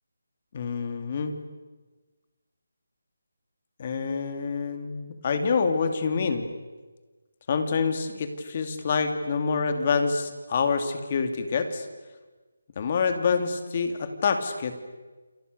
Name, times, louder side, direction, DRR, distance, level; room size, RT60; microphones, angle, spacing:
voice 1, 0.5-1.4 3.8-6.5 7.5-11.9 12.8-14.8, left 5 dB, 30° left, 7 dB, 2.6 m, -27 dB
29.0 x 28.5 x 6.7 m, 1.3 s
figure-of-eight pair, 175°, 0 cm